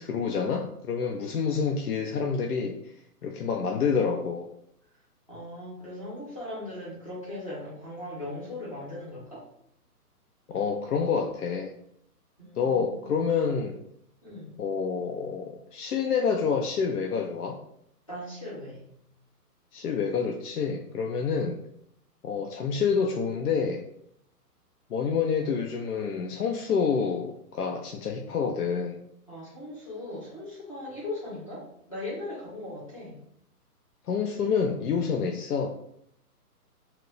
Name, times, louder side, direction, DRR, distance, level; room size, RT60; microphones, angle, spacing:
voice 1, 0.0-2.9 3.2-4.5 10.5-11.8 12.6-13.8 14.6-17.6 19.7-21.6 22.2-23.8 24.9-29.0 34.1-35.7, left 6 dB, 70° left, 2 dB, 0.5 m, -28 dB
voice 2, 5.3-9.4 12.4-13.2 14.2-14.6 18.1-18.9 29.3-33.1, left 1 dB, 20° left, -8 dB, 0.7 m, -39 dB
2.9 x 2.1 x 3.8 m, 0.71 s
hypercardioid pair, 180°, 48 cm